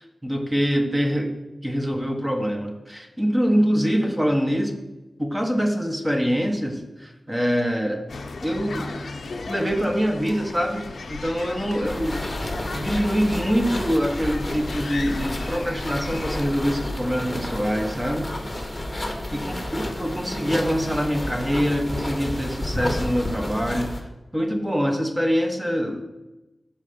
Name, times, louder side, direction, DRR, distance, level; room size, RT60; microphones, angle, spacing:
voice 1, 0.0-1.3 1.6-4.7 5.2-8.1 8.4-8.9 9.5-18.3 18.9-19.0 19.3-26.0, equal, 15° right, 3 dB, 0.8 m, -24 dB
sound 1, 8.1-16.5, left 3 dB, 80° left, 0.5 m, -36 dB
sound 2, 11.8-24.0, left 1 dB, 20° left, 0.9 m, -31 dB
6.5 x 4.3 x 5.0 m, 1.0 s
wide cardioid pair, 75°, 0 cm